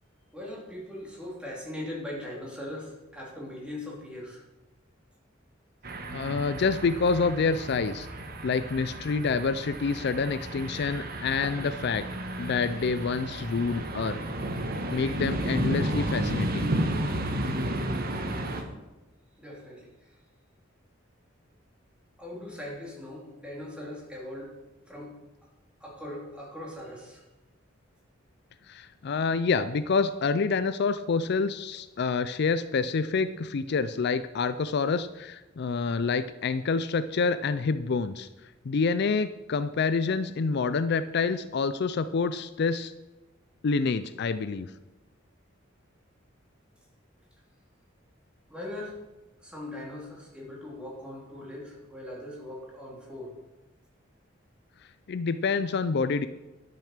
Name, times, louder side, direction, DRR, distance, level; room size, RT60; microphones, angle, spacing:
voice 1, 0.3-4.4 19.4-20.1 22.2-24.6 24.8-25.1 25.8-27.2 48.5-49.0 49.4-53.4, left 1 dB, 5° right, -3 dB, 3.1 m, -40 dB
sound 1, 5.8-18.6, right 1 dB, 50° right, 1.3 m, -32 dB
voice 2, 6.1-8.1 8.4-12.1 12.4-14.2 14.9-16.7 28.7-38.3 38.7-42.9 43.6-44.7 55.1-56.3, left 4 dB, 55° left, 13 dB, 0.4 m, -27 dB
11.5 x 6.9 x 6.6 m, 1.1 s
head